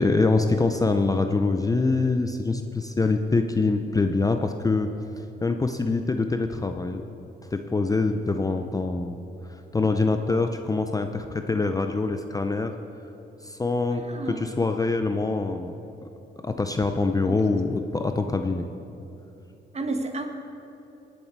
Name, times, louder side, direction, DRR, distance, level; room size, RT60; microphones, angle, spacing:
voice 1, 0.0-4.9 5.4-7.0 7.5-9.2 9.7-12.8 13.4-15.7 16.4-18.7, left 3 dB, 20° left, 6 dB, 0.5 m, -24 dB
voice 2, 13.9-14.6 17.2-17.6 19.7-20.3, right 2 dB, 35° right, 5 dB, 1.3 m, -32 dB
20.0 x 7.4 x 4.6 m, 2.9 s
cardioid pair, 90°, 20 cm